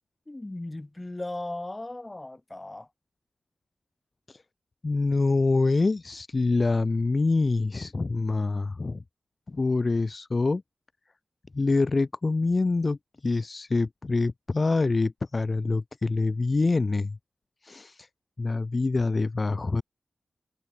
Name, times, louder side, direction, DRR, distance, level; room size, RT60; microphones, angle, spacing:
voice 1, 0.3-2.9, left 2 dB, 20° left, 2.2 m, -37 dB
voice 2, 4.8-9.0 9.5-10.6 11.5-17.2 17.6-18.1 18.4-19.8, left 3 dB, 40° left, 0.7 m, -25 dB
wide cardioid pair, 80°, 0 cm